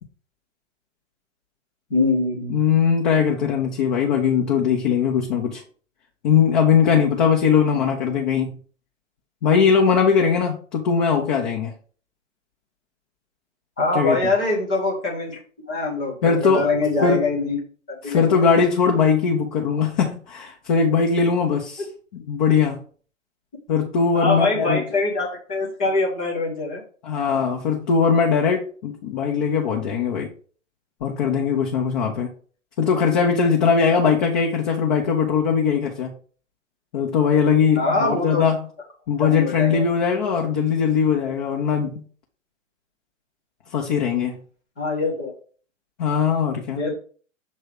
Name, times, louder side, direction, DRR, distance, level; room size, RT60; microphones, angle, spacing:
voice 1, 1.9-2.6 13.8-15.4 15.7-17.6 17.9-18.2 24.1-26.8 37.8-38.5 39.2-39.8 44.8-45.3 46.7-47.0, left 3 dB, 5° left, -3 dB, 0.3 m, -23 dB
voice 2, 2.5-5.6 6.2-8.6 9.4-11.7 13.9-14.2 16.2-16.7 17.0-17.2 18.0-21.8 22.3-22.8 23.7-24.8 27.0-30.3 31.0-32.3 32.8-36.1 36.9-38.7 39.1-42.0 43.7-44.4 46.0-46.8, left 6 dB, 35° left, 1 dB, 1.0 m, -20 dB
6.9 x 3.2 x 4.9 m, 0.42 s
figure-of-eight pair, 115°, 39 cm